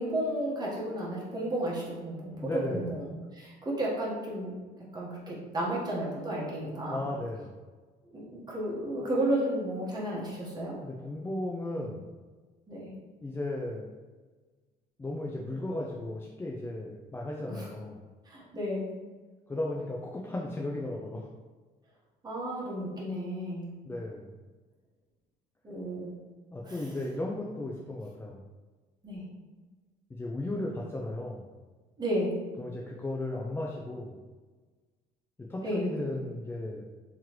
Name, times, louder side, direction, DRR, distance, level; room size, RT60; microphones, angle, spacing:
voice 1, 0.0-3.1 3.3-4.5 4.9-7.1 8.1-10.7 12.7-12.9 17.5-17.7 18.3-18.9 22.2-23.7 25.6-26.1 26.6-26.9 29.0-29.2 32.0-32.3 35.6-35.9, right 1 dB, 25° right, -5 dB, 1.3 m, -33 dB
voice 2, 2.4-2.9 6.9-7.5 10.8-12.1 13.2-13.9 15.0-18.0 19.5-21.3 23.8-24.4 26.5-28.4 30.1-31.5 32.6-34.2 35.4-36.8, left 1 dB, 15° left, -3 dB, 0.4 m, -35 dB
3.6 x 3.1 x 3.0 m, 1.4 s
cardioid pair, 110°, 17 cm